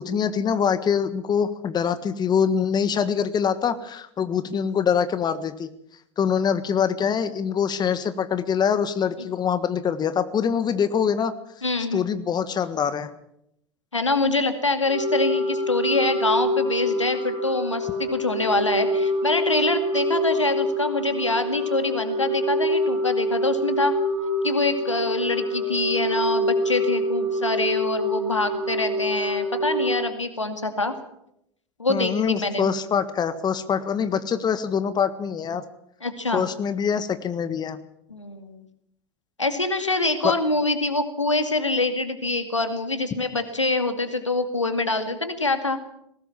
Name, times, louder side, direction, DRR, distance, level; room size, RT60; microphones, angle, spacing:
voice 1, 0.0-5.7 6.2-11.3 11.9-13.1 31.9-35.6 36.3-37.8 40.2-40.3, left 7 dB, 25° left, 12 dB, 1.5 m, -24 dB
voice 2, 11.6-12.1 13.9-23.9 24.4-30.9 31.8-32.7 36.0-36.5 38.1-38.7 39.4-45.8, left 2 dB, 90° left, 9 dB, 2.2 m, -25 dB
sound 1, 14.8-29.9, equal, 80° right, 6.9 m, -26 dB
20.5 x 18.0 x 7.3 m, 0.76 s
figure-of-eight pair, 80°, 15 cm